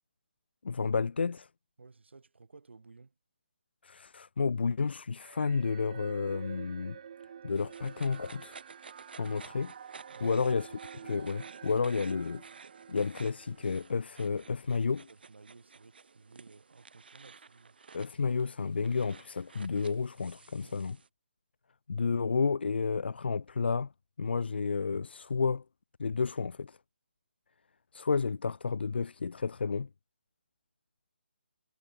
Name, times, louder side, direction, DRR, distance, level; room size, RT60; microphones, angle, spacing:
voice 1, 0.6-1.5 3.8-7.0 7.4-8.6 9.2-9.7 10.2-10.7 11.0-12.4 12.9-15.1 17.9-21.0 21.9-23.9 24.2-25.6 26.0-26.8 27.9-29.9, left 5 dB, 65° left, 1.0 m, -31 dB
voice 2, 1.8-3.1 10.1-10.4 15.1-17.8 20.6-20.8, right 4 dB, 85° right, 4.4 m, -55 dB
sound 1, 5.2-14.7, right 8 dB, 35° right, 0.7 m, -49 dB
sound 2, 7.5-21.1, right 5 dB, 60° right, 2.8 m, -54 dB
hypercardioid pair, 170°, 6 cm